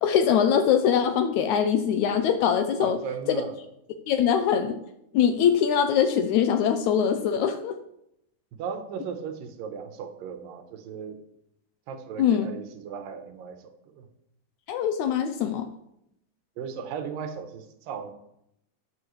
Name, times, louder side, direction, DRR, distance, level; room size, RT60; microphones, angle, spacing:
voice 1, 0.0-3.0 3.3-3.4 4.1-4.8 5.1-7.7 12.2-12.5 14.7-15.7, left 8 dB, 80° left, 8 dB, 1.7 m, -22 dB
voice 2, 2.8-3.6 8.6-11.2 11.9-14.1 16.6-18.1, right 7 dB, 75° right, 7 dB, 2.7 m, -36 dB
13.0 x 9.2 x 3.2 m, 0.79 s
omnidirectional pair, 4.0 m